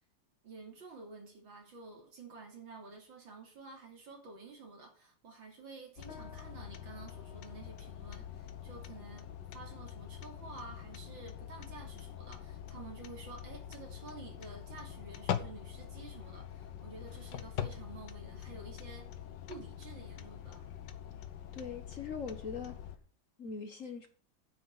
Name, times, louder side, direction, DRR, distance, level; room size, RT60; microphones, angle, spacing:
voice 1, 0.4-9.3 9.5-19.1 19.5-20.7, right 4 dB, 70° right, 3.6 m, -51 dB
sound 1, 6.0-23.0, left 9 dB, 65° left, 1.5 m, -44 dB
sound 2, 6.1-15.7, left 6 dB, 85° left, 2.4 m, -62 dB
voice 2, 21.5-22.7 23.4-24.1, left 5 dB, 45° left, 1.3 m, -41 dB
9.7 x 5.6 x 8.0 m
omnidirectional pair, 2.2 m